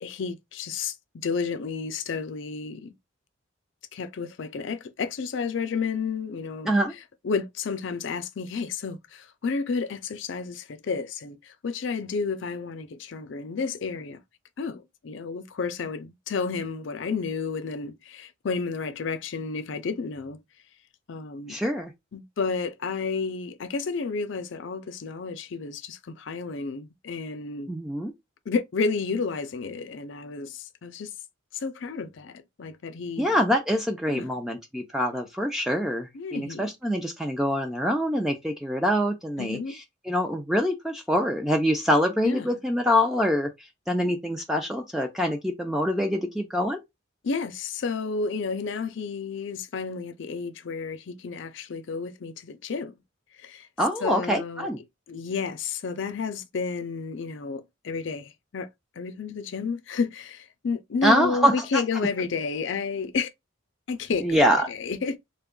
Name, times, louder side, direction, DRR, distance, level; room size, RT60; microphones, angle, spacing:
voice 1, 0.0-2.9 3.9-6.7 7.2-14.2 14.6-20.4 21.1-21.6 22.1-27.7 28.5-31.1 31.5-33.4 34.1-34.3 36.1-36.7 39.4-39.8 42.2-42.5 47.2-52.9 53.3-53.7 54.0-54.7 55.1-58.7 59.0-63.3 63.9-65.2, left 4 dB, 60° left, 0.4 m, -31 dB
voice 2, 21.5-21.9 27.7-28.1 33.2-39.6 40.1-43.5 43.9-46.8 53.8-54.8 61.0-61.8 64.2-64.7, equal, ahead, 0.4 m, -25 dB
3.4 x 2.3 x 3.6 m
head